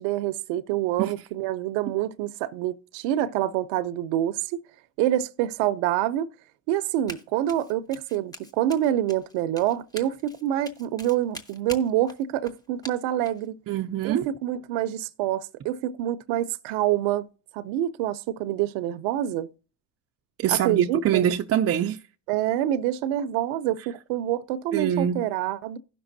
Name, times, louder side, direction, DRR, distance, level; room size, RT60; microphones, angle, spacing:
voice 1, 0.0-4.6 5.0-6.3 6.7-13.6 14.0-17.3 17.5-19.5 20.5-21.3 22.3-25.8, right 12 dB, 80° right, 0.6 m, -26 dB
Run, 7.1-7.2 7.5-13.5, equal, 10° left, 1.1 m, -43 dB
voice 2, 13.7-14.3 20.4-22.0 24.7-25.3, right 10 dB, 35° right, 0.4 m, -24 dB
16.5 x 6.0 x 2.6 m
supercardioid pair, 105°, 45 cm